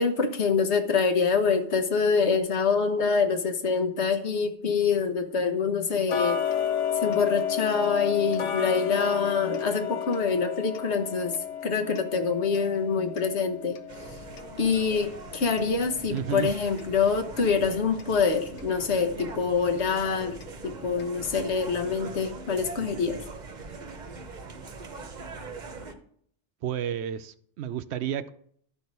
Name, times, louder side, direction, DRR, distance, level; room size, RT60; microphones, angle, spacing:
voice 1, 0.0-6.4 7.0-11.4 11.6-13.8 14.6-20.4 20.6-23.2, left 5 dB, 70° left, 1.3 m, -25 dB
Tick-tock, 6.1-16.9 17.3-17.4 18.0-18.1 18.6-18.7 19.2-19.3 19.8-19.9 20.4-20.5 21.0-21.1, left 9 dB, 90° left, 1.1 m, -32 dB
sound 1, 13.9-26.0, right 4 dB, 40° right, 0.9 m, -42 dB
voice 2, 16.1-16.5 26.6-28.3, right 9 dB, 70° right, 0.8 m, -31 dB
12.0 x 4.6 x 5.3 m
omnidirectional pair, 1.2 m